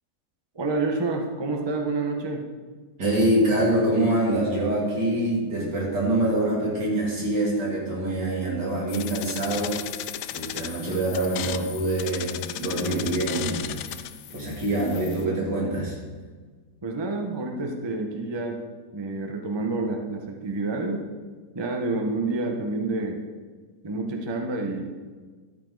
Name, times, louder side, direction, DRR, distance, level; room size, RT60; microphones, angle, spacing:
voice 1, 0.5-2.4 16.8-18.6 18.9-21.0 21.5-23.2 23.8-25.1, right 3 dB, 20° right, 3 dB, 0.8 m, -28 dB
voice 2, 3.0-9.8 10.3-12.3 12.6-13.7 14.3-16.0, right 1 dB, 85° right, -4 dB, 3.5 m, -25 dB
sound 1, 8.9-15.3, left 12 dB, 80° left, 1.1 m, -36 dB
12.5 x 8.9 x 4.0 m, 1.4 s
omnidirectional pair, 1.8 m